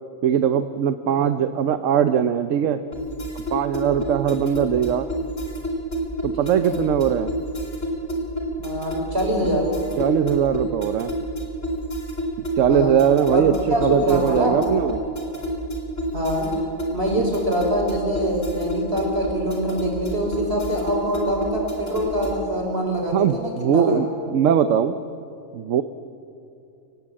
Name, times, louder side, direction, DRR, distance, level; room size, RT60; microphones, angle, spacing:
voice 1, 0.2-2.8 3.5-5.1 6.2-7.3 10.0-11.2 12.6-15.0 23.1-24.9 25.5-25.8, right 8 dB, 80° right, 10 dB, 1.1 m, -20 dB
sound 1, 2.9-22.5, right 1 dB, 75° left, 4.0 m, -29 dB
voice 2, 6.4-6.7 8.6-9.7 12.7-13.0 13.3-13.4 13.7-14.6 16.1-16.5 16.9-24.0, equal, 50° right, -1 dB, 5.6 m, -24 dB
29.0 x 16.5 x 8.7 m, 2.7 s
omnidirectional pair, 1.3 m